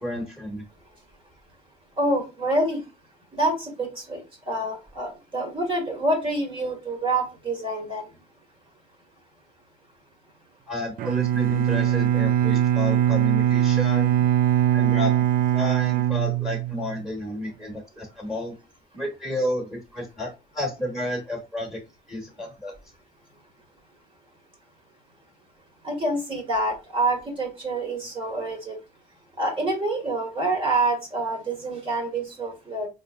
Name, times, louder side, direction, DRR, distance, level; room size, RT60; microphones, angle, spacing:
voice 1, 0.0-0.6 10.7-14.3 14.7-15.1 15.5-18.5 18.9-21.8 22.1-22.7, left 1 dB, ahead, 0 dB, 1.5 m, -31 dB
voice 2, 2.0-2.8 3.3-4.2 4.5-8.1 25.8-28.8 29.4-32.9, right 2 dB, 30° right, 2 dB, 1.7 m, -27 dB
Bowed string instrument, 11.0-17.0, right 11 dB, 60° right, 0.4 m, -21 dB
4.4 x 3.2 x 2.5 m, 0.27 s
cardioid pair, 110°, 17 cm